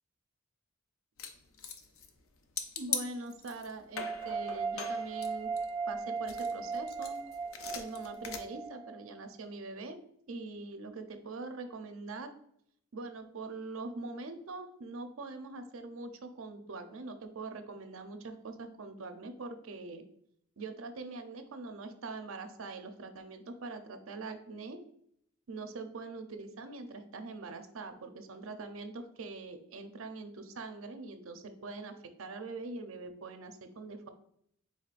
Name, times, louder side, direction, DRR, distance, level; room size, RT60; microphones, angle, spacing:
sound 1, 1.2-2.2 2.6-3.7 4.0-5.9 6.3-8.4, left 6 dB, 75° left, 0.6 m, -40 dB
voice 1, 2.8-5.5 5.9-7.2 7.7-10.0 10.3-12.3 12.9-20.0 20.6-24.8 25.5-34.1, right 3 dB, 75° right, 7 dB, 0.6 m, -43 dB
sound 2, 4.0-9.2, right 5 dB, 25° right, 0.4 m, -37 dB
4.9 x 4.1 x 2.4 m, 0.70 s
head